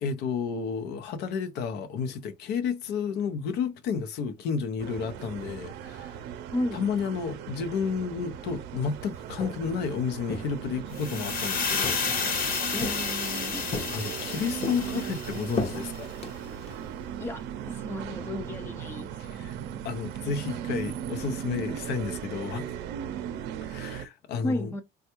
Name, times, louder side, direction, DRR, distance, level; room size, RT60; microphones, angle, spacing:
voice 1, 0.0-6.2 6.7-12.4 13.9-16.1 19.2-19.6 19.8-22.7 23.7-24.7, left 6 dB, 80° left, 0.6 m, -31 dB
sound 1, 4.8-24.1, right 9 dB, 85° right, 0.5 m, -37 dB
Walk footsteps, 9.2-9.8 10.3-11.3 11.8-12.4 12.8-13.3 13.7-14.3 14.6-16.8, left 3 dB, 35° left, 0.8 m, -36 dB
sound 2, 10.9-16.0, left 5 dB, 55° left, 1.1 m, -31 dB
voice 2, 12.7-13.7 17.2-19.2 24.4-24.8, left 1 dB, 15° left, 0.4 m, -33 dB
3.3 x 2.2 x 2.9 m
cardioid pair, 110°, 17 cm